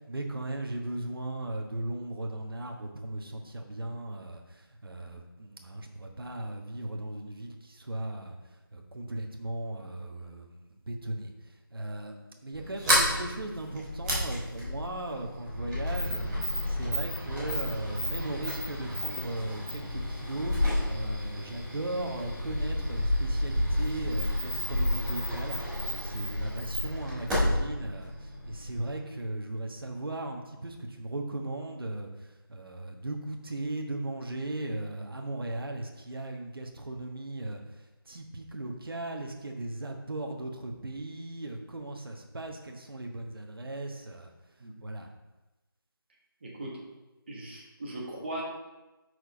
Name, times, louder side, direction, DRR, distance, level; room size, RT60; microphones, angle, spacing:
voice 1, 0.1-16.3 16.6-20.5 20.8-44.3 44.8-45.1, right 2 dB, 70° right, 2 dB, 1.2 m, -37 dB
Sliding door, 12.5-28.9, left 1 dB, 5° right, 1.0 m, -31 dB
voice 2, 46.4-46.8 47.3-48.4, right 1 dB, 30° right, -3 dB, 1.4 m, -39 dB
6.4 x 4.7 x 5.0 m, 1.1 s
figure-of-eight pair, 175°, 13 cm